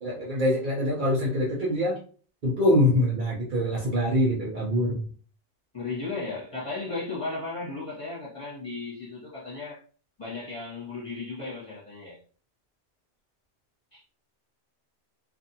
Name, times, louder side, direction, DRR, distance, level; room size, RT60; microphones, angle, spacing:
voice 1, 0.0-2.0 2.4-5.0, left 1 dB, 50° right, 0.8 m, -24 dB
voice 2, 5.7-9.8 10.2-12.2 13.9-14.0, left 3 dB, 30° left, 1.1 m, -35 dB
2.5 x 2.5 x 2.7 m
omnidirectional pair, 1.2 m